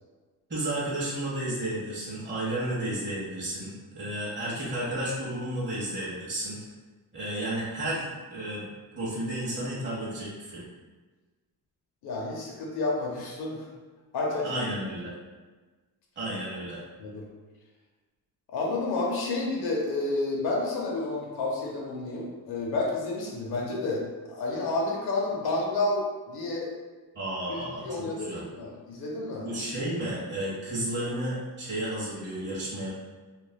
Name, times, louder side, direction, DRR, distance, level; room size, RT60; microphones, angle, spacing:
voice 1, 0.5-6.6 7.1-8.6 8.9-10.6 14.4-15.1 16.2-16.8 27.1-28.4 29.4-32.9, right 1 dB, 30° right, -8 dB, 1.1 m, -32 dB
voice 2, 12.0-13.6 14.1-14.6 17.0-17.3 18.5-24.0 24.3-26.7 27.8-29.5, left 2 dB, 85° left, -2 dB, 0.7 m, -30 dB
3.1 x 2.5 x 2.2 m, 1.3 s
cardioid pair, 115°, 37 cm